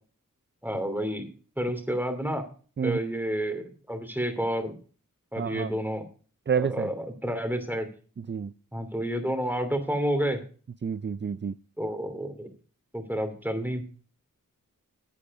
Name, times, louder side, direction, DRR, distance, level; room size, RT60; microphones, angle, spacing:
voice 1, 0.6-1.2 1.6-2.5 2.8-4.7 5.3-6.0 6.6-7.9 8.7-10.4 11.8-12.5 12.9-13.8, equal, 5° right, 2.8 m, -30 dB
voice 2, 5.4-5.7 6.5-6.9 8.2-8.5 10.8-11.5, right 7 dB, 35° right, 0.4 m, -29 dB
11.0 x 8.6 x 4.8 m
wide cardioid pair, 45°, 33 cm